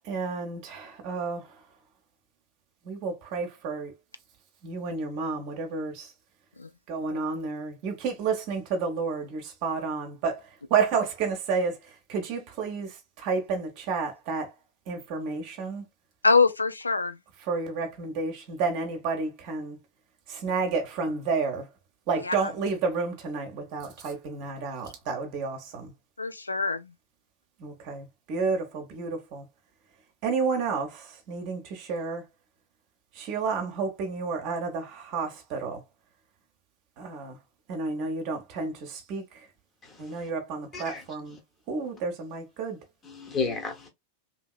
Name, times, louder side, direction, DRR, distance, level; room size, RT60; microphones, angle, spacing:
voice 1, 0.0-1.6 2.8-3.9 4.6-6.1 6.9-14.5 14.9-15.8 17.5-19.8 20.3-21.7 22.1-25.9 27.6-29.4 30.2-32.2 33.1-35.8 37.0-37.4 37.7-39.2 40.0-41.4 41.7-42.8, right 4 dB, 45° right, 0.8 m, -31 dB
voice 2, 16.2-17.2 22.2-22.5 26.2-26.9, left 4 dB, 80° left, 0.3 m, -24 dB
voice 3, 39.8-40.3 40.7-41.0 43.0-43.9, left 4 dB, 25° left, 0.9 m, -33 dB
2.8 x 2.7 x 2.3 m
figure-of-eight pair, 90°, 0 cm